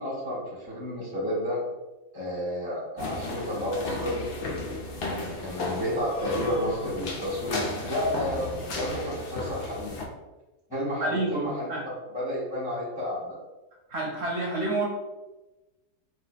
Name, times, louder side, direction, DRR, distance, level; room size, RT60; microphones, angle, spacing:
voice 1, 0.0-1.6 2.1-4.3 5.0-10.0 10.7-13.4, equal, 25° left, -8 dB, 0.5 m, -31 dB
sound 1, 3.0-10.1, left 2 dB, 80° left, 0.5 m, -34 dB
voice 2, 11.0-11.8 13.9-14.8, right 2 dB, 55° right, -4 dB, 0.9 m, -29 dB
2.7 x 2.2 x 4.0 m, 1.1 s
omnidirectional pair, 1.6 m